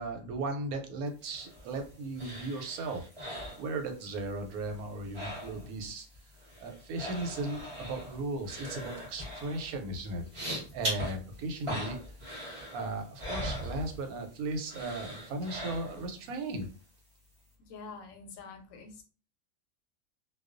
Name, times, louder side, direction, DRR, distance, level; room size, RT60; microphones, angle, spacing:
voice 1, 0.0-6.1 6.6-10.2 10.5-12.2 12.7-16.7, right 2 dB, 90° right, 5 dB, 1.0 m, -36 dB
sound 1, 1.2-4.3 4.5-5.9 6.1-14.3 14.7-16.2 16.6-16.7, equal, 30° right, 0.8 m, -40 dB
voice 2, 17.6-19.0, left 4 dB, 75° left, 4 dB, 0.9 m, -46 dB
2.3 x 2.2 x 2.4 m, 0.37 s
omnidirectional pair, 1.5 m